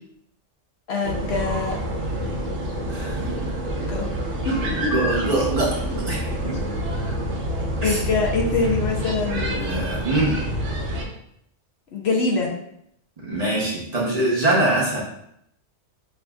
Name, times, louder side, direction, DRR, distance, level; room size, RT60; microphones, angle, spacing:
voice 1, 0.9-1.8 2.2-2.4 3.9-4.1 4.4-4.9 7.8-9.5 11.9-12.5, left 3 dB, 65° left, -1 dB, 0.9 m, -24 dB
sound 1, 1.0-11.0, equal, 75° right, 1.0 m, -27 dB
voice 2, 2.9-3.3 4.9-6.6 7.8-8.0 9.3-10.4 13.2-15.0, right 2 dB, 40° right, -5 dB, 0.8 m, -24 dB
5.6 x 2.6 x 2.3 m, 0.74 s
omnidirectional pair, 1.2 m